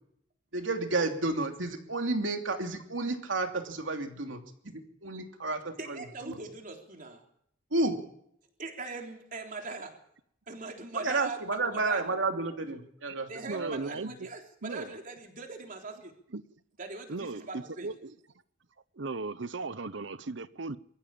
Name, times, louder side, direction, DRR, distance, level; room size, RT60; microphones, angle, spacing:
voice 1, 0.5-4.4 4.6-6.0 6.3-6.4 7.7-8.0 10.9-14.1, right 3 dB, 90° right, 3.0 m, -31 dB
voice 2, 5.8-7.2 8.6-9.9 10.5-12.2 13.3-16.1 16.8-17.9, right 3 dB, 45° right, 3.6 m, -41 dB
voice 3, 13.5-14.3 14.6-15.0 16.3-16.5 17.1-18.1 18.9-20.8, right 3 dB, 70° right, 0.9 m, -37 dB
22.5 x 14.5 x 8.7 m
head